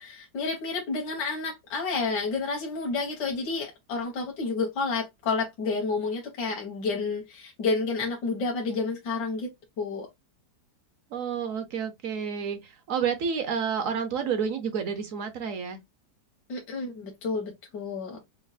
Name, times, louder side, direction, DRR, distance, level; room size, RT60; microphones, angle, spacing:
voice 1, 0.0-10.1 16.5-18.2, left 4 dB, 80° left, 1.6 m, -30 dB
voice 2, 11.1-15.8, right 7 dB, 60° right, 1.0 m, -30 dB
5.2 x 2.0 x 2.5 m
omnidirectional pair, 1.8 m